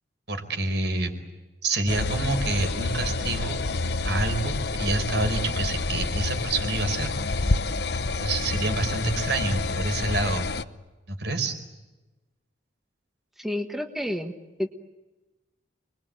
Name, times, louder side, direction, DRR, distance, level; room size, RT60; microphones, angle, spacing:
voice 1, 0.3-1.1 1.6-3.6 4.0-7.2 8.2-10.5 11.1-11.5, right 2 dB, 70° right, 7 dB, 4.8 m, -27 dB
sound 1, 1.9-10.6, left 3 dB, 65° left, 1.0 m, -28 dB
voice 2, 13.4-14.3 14.6-14.7, left 1 dB, ahead, 3 dB, 1.4 m, -30 dB
30.0 x 22.0 x 9.0 m, 1.1 s
head